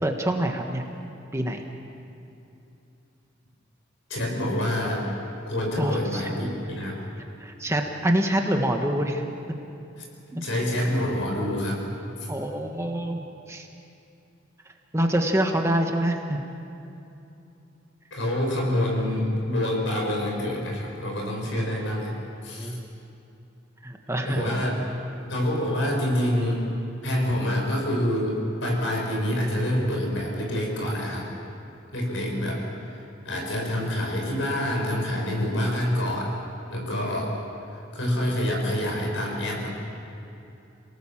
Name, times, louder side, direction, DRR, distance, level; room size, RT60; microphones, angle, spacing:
voice 1, 0.0-0.8 1.3-1.6 5.8-6.3 7.4-9.2 12.3-13.2 13.5-13.7 14.9-16.4 22.6-22.9 23.8-24.5, right 1 dB, 15° right, 3 dB, 1.4 m, -25 dB
voice 2, 4.1-5.1 5.5-7.0 10.0-11.8 12.2-12.3 18.1-22.1 22.4-22.7 24.3-24.8 25.3-26.7 27.0-31.3 31.9-36.4 36.7-37.3 37.7-39.7, left 1 dB, 70° left, 0 dB, 6.1 m, -27 dB
28.0 x 18.0 x 7.4 m, 2.8 s
head